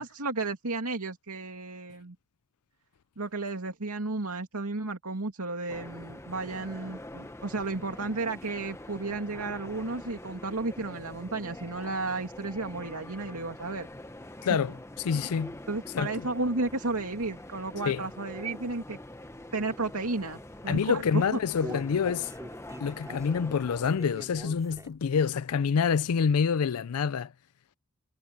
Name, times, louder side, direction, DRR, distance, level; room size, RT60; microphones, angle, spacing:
voice 1, 0.0-2.2 3.2-13.9 15.7-19.0 19.5-21.4, right 3 dB, 85° right, 2.6 m, -33 dB
sound 1, 5.7-23.9, left 1 dB, 10° left, 1.1 m, -45 dB
voice 2, 14.4-15.6 15.9-16.3 17.9-18.0 20.7-22.3 22.8-27.3, left 6 dB, 80° left, 0.4 m, -27 dB
Human voice, 21.1-25.2 25.6-25.7 26.1-26.2, right 1 dB, 15° right, 6.7 m, -44 dB
head